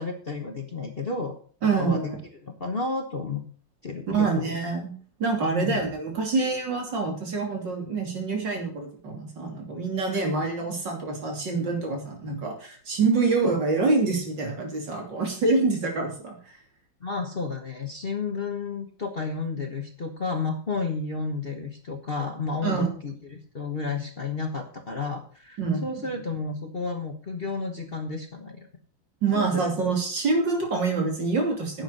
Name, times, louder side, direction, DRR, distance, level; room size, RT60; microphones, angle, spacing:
voice 1, 0.0-1.3 1.8-2.1 2.4-3.5 3.8-4.6 5.5-5.8 10.1-10.3 17.0-28.7 29.3-29.9, left 4 dB, 35° left, 4 dB, 1.2 m, -32 dB
voice 2, 1.6-2.2 4.1-4.9 5.2-16.4 22.6-22.9 25.6-25.9 29.2-31.8, right 4 dB, 65° right, 2 dB, 3.6 m, -26 dB
10.5 x 8.1 x 6.6 m, 0.43 s
omnidirectional pair, 2.1 m